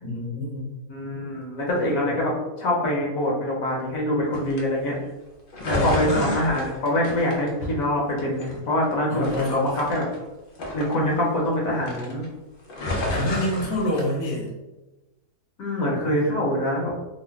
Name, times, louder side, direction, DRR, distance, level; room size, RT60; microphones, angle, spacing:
voice 1, 0.0-0.6 5.7-6.3 9.1-9.7 13.1-14.5, left 1 dB, 30° left, -4 dB, 0.6 m, -27 dB
voice 2, 0.9-5.0 5.7-10.0 10.7-12.2 15.6-16.9, left 1 dB, 65° left, -3 dB, 1.1 m, -24 dB
sound 1, 4.3-4.6 5.5-7.9 8.2-8.9 9.2-11.5 11.8-12.3 12.6-14.0, left 1 dB, 80° left, 0.4 m, -31 dB
3.0 x 2.1 x 3.3 m, 1.1 s
omnidirectional pair, 1.7 m